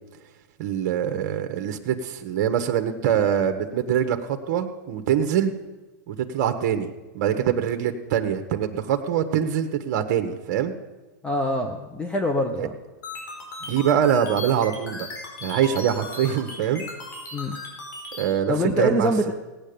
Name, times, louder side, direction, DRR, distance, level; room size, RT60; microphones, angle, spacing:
voice 1, 0.6-5.5 6.1-6.9 7.1-10.7 12.6-12.7 13.6-15.1 15.4-16.8 18.1-19.3, right 9 dB, 50° right, 6 dB, 1.3 m, -24 dB
voice 2, 11.2-12.8 17.3-17.6 18.5-19.3, equal, 10° left, 5 dB, 1.0 m, -24 dB
sound 1, 13.0-18.2, left 2 dB, 75° left, 4.9 m, -36 dB
17.5 x 8.8 x 6.9 m, 1.2 s
hypercardioid pair, 130°, 10 cm